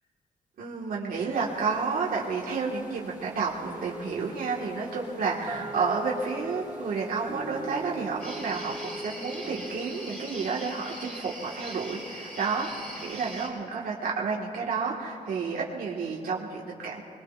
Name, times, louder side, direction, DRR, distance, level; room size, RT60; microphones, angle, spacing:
voice 1, 0.6-17.0, right 5 dB, 80° right, -3 dB, 1.6 m, -31 dB
sound 1, 1.3-13.4, equal, 25° left, 4.9 m, -51 dB
sound 2, 3.6-12.1, right 1 dB, 25° right, 1.7 m, -41 dB
sound 3, 8.2-13.5, equal, 5° left, 4.4 m, -41 dB
25.5 x 21.0 x 2.4 m, 2.5 s
wide cardioid pair, 130°, 15 cm